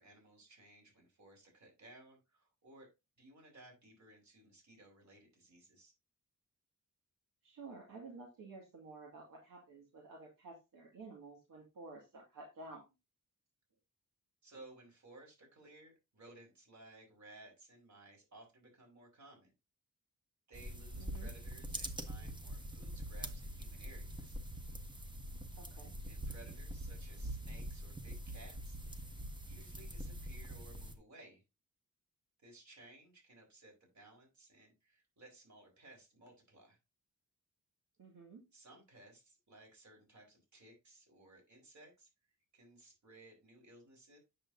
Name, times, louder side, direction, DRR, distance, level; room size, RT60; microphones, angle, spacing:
voice 1, 0.0-2.9 3.2-5.9 14.4-19.5 20.5-24.4 26.1-31.4 32.4-36.8 38.5-42.1 42.5-44.2, right 2 dB, 60° right, 1 dB, 4.3 m, -59 dB
voice 2, 7.4-12.8 21.0-21.3 25.5-25.9 38.0-38.4, right 3 dB, 80° right, -1 dB, 2.1 m, -52 dB
sound 1, 20.5-31.0, right 1 dB, 15° right, 1.0 m, -44 dB
8.7 x 6.6 x 2.7 m, 0.25 s
wide cardioid pair, 115°, 32 cm